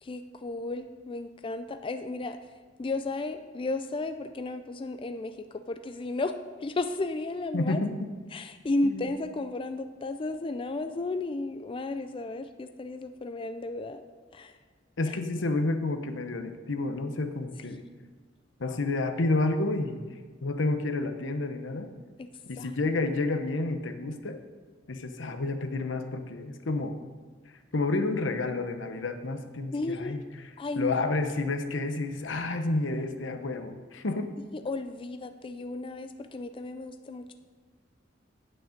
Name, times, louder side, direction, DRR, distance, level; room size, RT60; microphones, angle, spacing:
voice 1, 0.0-2.4 2.8-6.3 6.6-7.8 8.3-14.1 14.3-14.5 15.1-15.2 22.2-22.3 22.6-22.7 29.7-30.2 30.6-31.0 34.5-37.3, left 2 dB, 30° left, 8 dB, 0.4 m, -33 dB
voice 2, 7.5-8.1 8.8-9.1 15.0-17.9 18.6-20.0 20.4-21.9 22.5-24.4 24.9-27.0 27.7-30.2 30.8-34.3, left 2 dB, 80° left, 8 dB, 0.9 m, -30 dB
8.8 x 8.7 x 5.1 m, 1.5 s
head